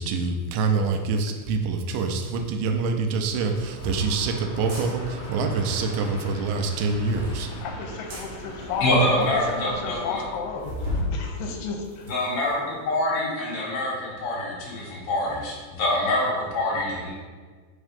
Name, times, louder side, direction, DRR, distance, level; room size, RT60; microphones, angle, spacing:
voice 1, 0.0-7.5, right 4 dB, 80° right, 5 dB, 2.2 m, -26 dB
sound 1, 2.3-2.4 3.3-4.0 4.6-4.9 6.5-7.4 8.1-8.3 8.9-9.0 9.2-9.3 9.6-9.7 10.6-11.1 11.6-12.5, left 1 dB, 60° right, 1.8 m, -33 dB
Train, 3.0-12.2, equal, 70° left, 1.6 m, -41 dB
voice 2, 7.6-12.1, left 5 dB, 90° left, 3 dB, 2.4 m, -33 dB
voice 3, 8.8-10.2 12.1-17.1, left 1 dB, 55° left, -4 dB, 2.0 m, -25 dB
5.3 x 3.6 x 5.1 m, 1.5 s
omnidirectional pair, 4.1 m